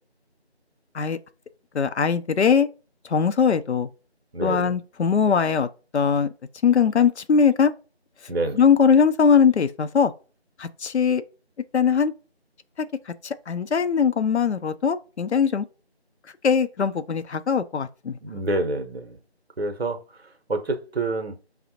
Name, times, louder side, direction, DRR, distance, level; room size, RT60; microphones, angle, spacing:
voice 1, 1.7-2.7 3.1-3.9 4.4-5.7 5.9-6.3 6.6-7.7 8.5-10.1 10.6-11.2 11.7-12.1 13.2-15.6 16.4-18.2, left 6 dB, 85° left, 0.5 m, -20 dB
voice 2, 4.3-4.8 8.3-8.6 18.2-19.2 19.6-20.0 20.5-21.4, right 2 dB, 65° right, 0.7 m, -27 dB
5.2 x 2.0 x 2.8 m
figure-of-eight pair, 175°, 33 cm